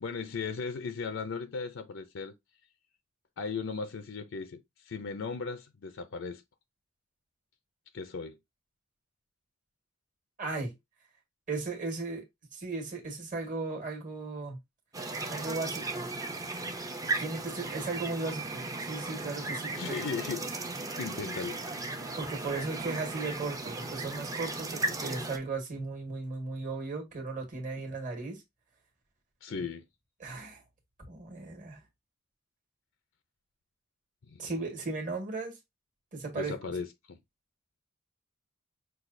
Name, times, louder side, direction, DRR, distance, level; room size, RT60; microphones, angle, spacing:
voice 1, 0.0-2.3 3.4-4.6 4.8-6.4 7.9-8.4 19.8-20.4 20.9-22.0 29.4-29.8 34.3-34.5 36.3-37.2, left 5 dB, 70° left, 0.5 m, -37 dB
voice 2, 10.4-10.7 11.5-12.2 12.5-14.6 15.3-16.1 17.2-20.0 22.1-28.4 29.5-29.7 30.2-30.6 31.1-31.8 34.4-35.5 36.1-36.7, right 3 dB, 40° right, 1.6 m, -36 dB
sound 1, 14.9-25.4, right 2 dB, 20° right, 0.6 m, -36 dB
6.1 x 2.4 x 2.6 m
head